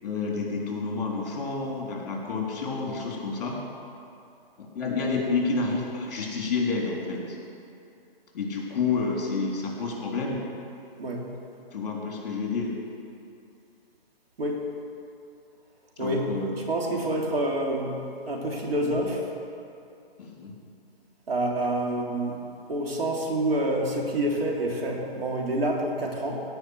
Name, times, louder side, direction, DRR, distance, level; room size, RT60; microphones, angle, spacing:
voice 1, 0.0-3.6 4.6-7.4 8.3-10.4 11.7-12.7 16.0-16.5 20.2-20.5, left 4 dB, 40° left, -2 dB, 3.6 m, -29 dB
voice 2, 16.0-16.3 16.7-19.2 21.3-22.4 22.7-26.4, right 1 dB, 75° right, -1 dB, 3.0 m, -27 dB
17.0 x 5.6 x 8.1 m, 2.6 s
hypercardioid pair, 160°, 30 cm